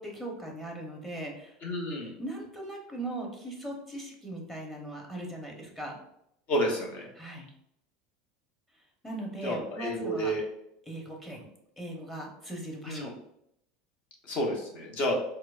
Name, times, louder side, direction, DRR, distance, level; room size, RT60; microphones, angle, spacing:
voice 1, 0.0-1.6 2.0-6.0 7.1-7.5 9.0-10.3 10.8-11.5 11.8-13.1, right 1 dB, 5° left, 0 dB, 0.9 m, -39 dB
voice 2, 1.6-2.1 6.5-7.1 9.4-10.4 12.9-13.1 14.3-15.1, equal, 45° left, 0 dB, 1.0 m, -30 dB
4.4 x 2.1 x 2.4 m, 0.75 s
supercardioid pair, 110°, 3 cm